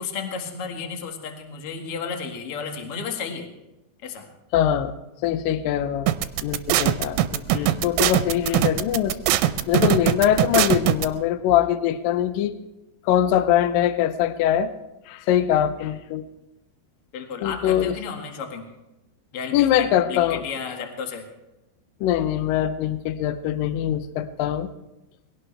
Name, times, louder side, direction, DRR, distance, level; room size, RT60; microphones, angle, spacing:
voice 1, 0.0-3.5 4.0-4.3 7.5-7.8 17.1-18.7 19.3-21.3, left 5 dB, 50° left, 3 dB, 1.9 m, -33 dB
voice 2, 4.5-4.9 5.2-6.1 6.4-9.2 9.7-12.5 13.1-14.7 15.1-16.2 17.4-17.9 19.5-20.4 22.0-24.7, left 10 dB, 80° left, 11 dB, 2.0 m, -22 dB
sound 1, 6.1-11.1, right 13 dB, 85° right, 2.8 m, -20 dB
22.0 x 17.0 x 3.3 m, 0.97 s
omnidirectional pair, 5.1 m